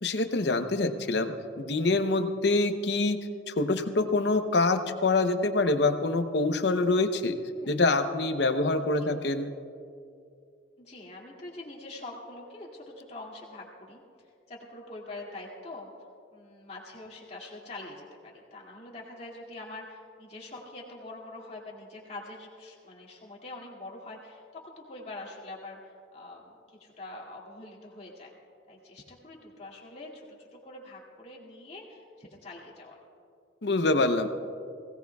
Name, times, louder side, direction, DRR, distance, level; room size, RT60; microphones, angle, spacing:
voice 1, 0.0-7.4 7.7-9.6 33.6-34.3, left 2 dB, 60° left, 8 dB, 0.8 m, -26 dB
voice 2, 10.8-14.0 14.5-15.9 16.3-28.3 28.7-33.0, left 2 dB, 35° left, -3 dB, 2.3 m, -44 dB
20.5 x 17.5 x 2.3 m, 2.5 s
head